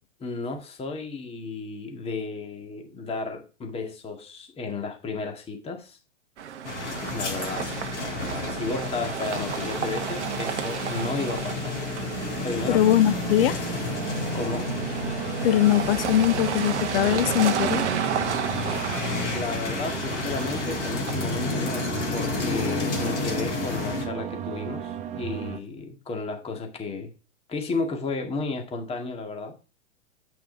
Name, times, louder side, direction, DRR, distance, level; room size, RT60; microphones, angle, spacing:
voice 1, 0.2-6.0 7.1-7.7 8.0-8.2 8.5-11.8 12.4-12.8 14.3-14.7 19.3-27.1 27.5-29.6, left 3 dB, 15° left, 1.9 m, -33 dB
sound 1, 6.4-23.3, right 8 dB, 70° right, 1.1 m, -33 dB
sound 2, 6.6-24.1, left 3 dB, 70° left, 3.4 m, -31 dB
voice 2, 12.7-13.7 15.4-17.9, left 12 dB, 55° left, 0.8 m, -21 dB
sound 3, 13.6-25.6, right 10 dB, 20° right, 0.7 m, -36 dB
8.9 x 5.9 x 4.4 m
hypercardioid pair, 115°, 36 cm